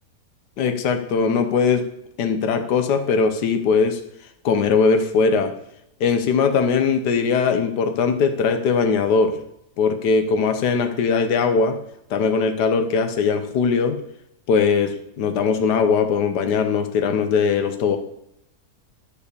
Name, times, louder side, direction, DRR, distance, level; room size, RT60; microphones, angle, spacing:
voice 1, 0.6-1.8 2.2-4.0 4.4-5.5 6.0-9.4 9.8-11.7 12.1-14.0 14.5-18.0, left 5 dB, 75° left, 7 dB, 1.6 m, -20 dB
11.5 x 7.3 x 6.9 m, 0.79 s
omnidirectional pair, 1.8 m